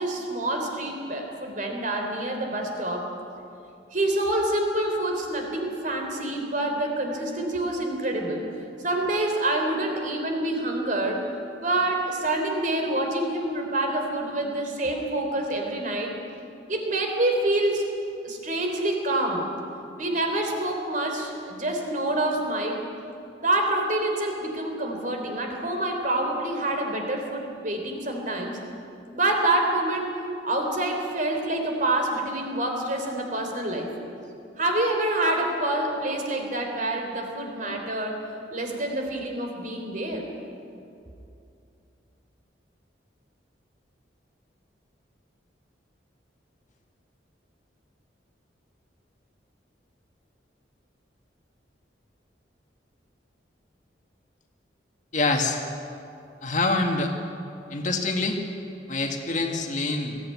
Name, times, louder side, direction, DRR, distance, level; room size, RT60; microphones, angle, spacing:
voice 1, 0.0-3.1 3.9-8.5 8.8-11.3 11.6-16.1 16.7-17.9 18.2-19.6 20.0-22.8 23.4-28.6 29.1-30.2 30.4-33.9 34.6-38.2 38.5-40.3, right 1 dB, 45° right, 3 dB, 3.6 m, -27 dB
voice 2, 55.1-55.6 56.4-57.1 57.7-58.4 58.9-60.2, left 3 dB, 40° left, 3 dB, 1.9 m, -25 dB
21.5 x 15.5 x 9.6 m, 2.6 s
head